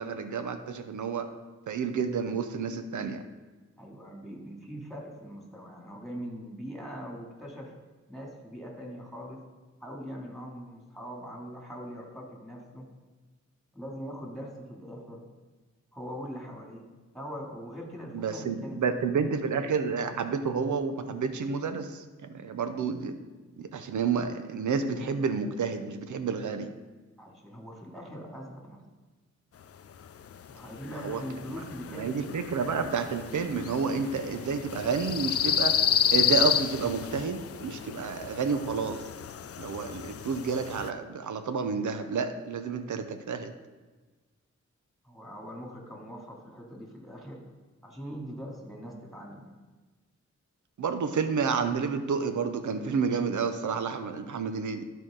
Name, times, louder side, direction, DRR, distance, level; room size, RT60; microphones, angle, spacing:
voice 1, 0.0-1.3 1.7-3.3 18.1-23.2 23.6-26.8 30.9-31.2 31.5-31.6 31.9-35.8 36.1-39.0 39.6-43.5 50.8-54.8, right 5 dB, 85° right, 9 dB, 0.7 m, -30 dB
voice 2, 3.8-7.7 8.1-9.4 9.8-12.9 13.7-15.2 15.9-16.9 17.1-19.0 27.2-28.8 30.5-32.5 45.0-47.4 47.8-49.5, equal, ahead, -1 dB, 2.6 m, -42 dB
sound 1, 30.1-40.9, left 8 dB, 55° left, 0.5 m, -31 dB
12.0 x 4.6 x 3.8 m, 1.3 s
cardioid pair, 55°, 29 cm